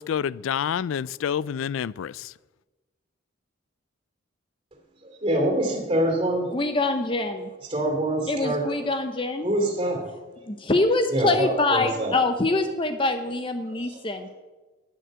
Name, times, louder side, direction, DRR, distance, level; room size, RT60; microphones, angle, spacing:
voice 1, 0.0-2.3, left 8 dB, 75° left, 0.3 m, -28 dB
voice 2, 5.0-6.5 7.7-8.9 9.4-10.1 11.1-12.2 13.6-14.0, right 1 dB, 25° right, 2.8 m, -25 dB
voice 3, 6.5-7.5 8.3-9.5 10.5-14.3, left 2 dB, 25° left, 0.7 m, -25 dB
9.8 x 9.4 x 8.0 m
head